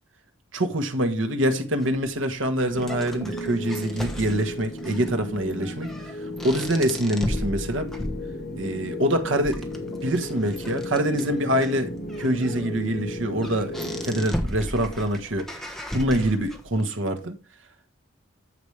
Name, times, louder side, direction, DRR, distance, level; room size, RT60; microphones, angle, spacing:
voice 1, 0.5-5.9 6.4-7.9 8.5-11.9 12.2-15.6 15.9-17.4, right 1 dB, 70° right, 1.4 m, -25 dB
sound 1, 1.8-16.8, equal, ahead, 1.2 m, -36 dB
sound 2, 2.7-14.3, left 1 dB, 55° left, 2.2 m, -35 dB
14.0 x 5.3 x 3.3 m
head